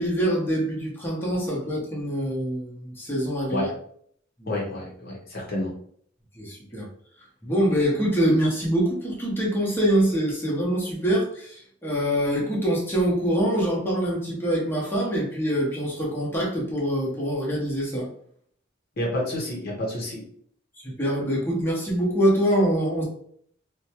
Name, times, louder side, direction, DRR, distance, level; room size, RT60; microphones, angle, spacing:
voice 1, 0.0-3.7 4.4-4.5 6.3-6.9 7.4-18.1 20.8-23.0, equal, 10° left, -5 dB, 0.8 m, -24 dB
voice 2, 4.5-5.7 19.0-20.2, left 1 dB, 50° left, -3 dB, 0.7 m, -29 dB
2.7 x 2.1 x 2.8 m, 0.62 s
head